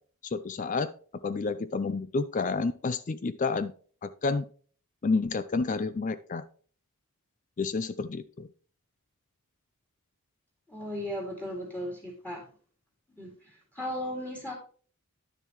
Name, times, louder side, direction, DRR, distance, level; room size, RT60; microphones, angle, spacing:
voice 1, 0.2-0.9 1.2-3.7 4.0-4.4 5.0-6.4 7.6-8.5, left 4 dB, 35° left, 13 dB, 0.4 m, -30 dB
voice 2, 10.7-12.4 13.2-13.3 13.8-14.5, left 1 dB, 5° left, 0 dB, 2.3 m, -36 dB
10.5 x 6.7 x 3.0 m, 0.43 s
head